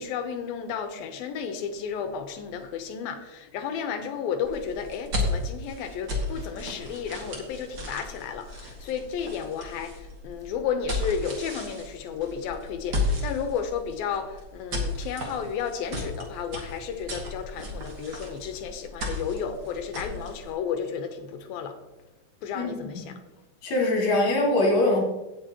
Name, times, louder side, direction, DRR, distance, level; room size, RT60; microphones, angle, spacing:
voice 1, 0.0-21.8 22.4-23.1, left 7 dB, 90° left, 7 dB, 2.9 m, -32 dB
sound 1, 4.4-20.5, left 1 dB, 35° right, 2.1 m, -34 dB
voice 2, 23.6-25.0, left 2 dB, 50° left, -2 dB, 3.8 m, -22 dB
17.0 x 7.3 x 3.0 m, 1.0 s
omnidirectional pair, 4.1 m